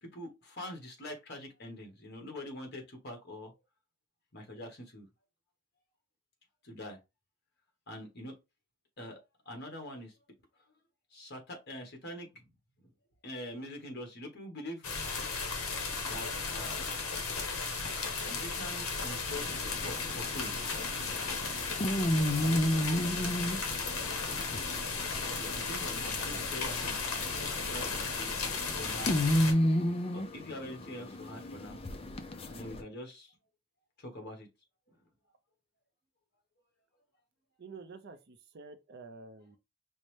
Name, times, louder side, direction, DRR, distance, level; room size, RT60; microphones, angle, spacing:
voice 1, 0.0-3.5 4.3-5.1 6.6-7.0 7.9-8.3 9.0-9.2 9.4-10.1 11.1-12.3 13.2-14.9 16.0-17.0 18.2-20.5 25.4-28.3 28.7-29.2 30.1-31.8 32.5-33.3 34.0-34.5 34.9-35.0, left 1 dB, 45° left, 1.3 m, -44 dB
rain and thunder, 14.8-29.5, left 4 dB, 70° left, 1.0 m, -35 dB
sound 1, 19.4-32.8, equal, 25° left, 0.4 m, -33 dB
voice 2, 37.6-39.6, right 4 dB, 45° right, 0.5 m, -49 dB
5.2 x 2.1 x 3.2 m
head